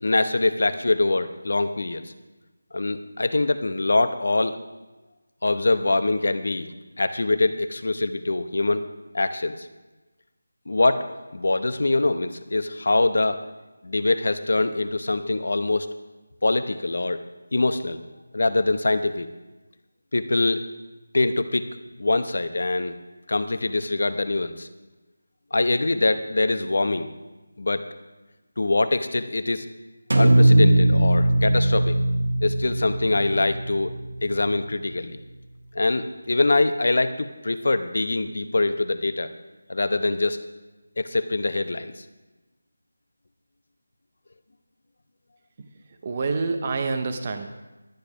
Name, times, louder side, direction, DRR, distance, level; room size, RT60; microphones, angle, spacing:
voice 1, 0.0-2.0 2.7-4.6 5.4-6.7 7.0-8.8 9.1-9.6 10.7-11.0 11.3-13.4 13.8-15.9 16.4-17.2 17.5-18.0 18.3-19.3 20.1-20.6 21.1-21.7 22.0-23.0 23.3-24.7 25.5-27.1 27.6-27.9 28.6-29.6 30.2-32.0 32.4-33.9 34.2-35.2 35.7-39.3 39.7-40.4 41.0-41.9, left 2 dB, 60° left, 11 dB, 0.8 m, -23 dB
sound 1, 30.1-34.3, right 1 dB, 75° right, 1.6 m, -20 dB
voice 2, 46.0-47.5, right 4 dB, 25° right, 7 dB, 0.6 m, -27 dB
12.0 x 9.1 x 4.9 m, 1.1 s
figure-of-eight pair, 175°, 0 cm